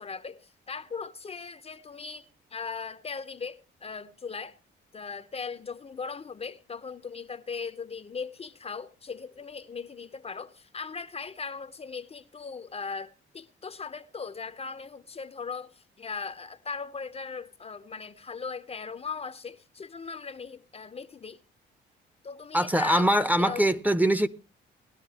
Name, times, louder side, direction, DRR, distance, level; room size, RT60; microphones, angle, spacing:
voice 1, 0.0-4.6 4.9-21.4 22.2-23.1 23.4-23.6, left 5 dB, 30° left, 0.6 m, -38 dB
voice 2, 22.5-24.3, right 1 dB, 10° right, 0.7 m, -23 dB
19.5 x 11.0 x 2.8 m
cardioid pair, 90°, 20 cm